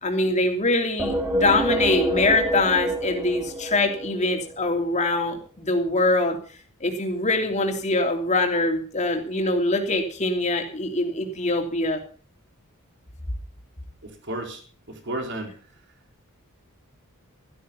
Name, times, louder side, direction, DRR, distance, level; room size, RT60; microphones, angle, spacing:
voice 1, 0.0-6.4 6.8-12.0, left 2 dB, 30° left, 3 dB, 3.0 m, -23 dB
sound 1, 1.0-4.6, right 1 dB, 10° right, 2.6 m, -27 dB
voice 2, 14.0-14.6 14.9-15.5, right 1 dB, 55° right, 4 dB, 4.0 m, -32 dB
13.5 x 13.0 x 5.6 m, 0.40 s
head